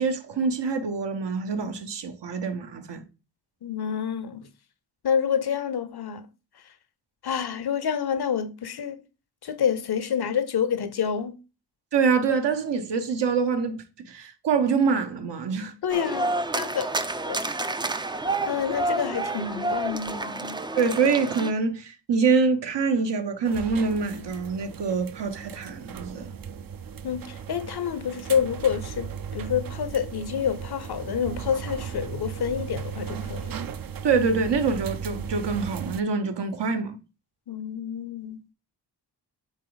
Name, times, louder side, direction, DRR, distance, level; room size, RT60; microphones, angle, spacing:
voice 1, 0.0-3.0 11.9-15.7 20.8-26.3 34.0-37.0, right 5 dB, 75° right, 1.0 m, -25 dB
voice 2, 3.6-4.5 5.0-6.2 7.2-9.0 9.4-11.4 15.8-16.9 17.3-17.4 18.5-20.6 27.0-33.6 37.5-38.4, left 8 dB, 60° left, 0.8 m, -28 dB
sound 1, 15.9-21.5, right 2 dB, 10° right, 0.4 m, -29 dB
sound 2, 23.5-36.0, right 7 dB, 55° right, 0.6 m, -36 dB
8.3 x 3.4 x 3.9 m
wide cardioid pair, 105°, 42 cm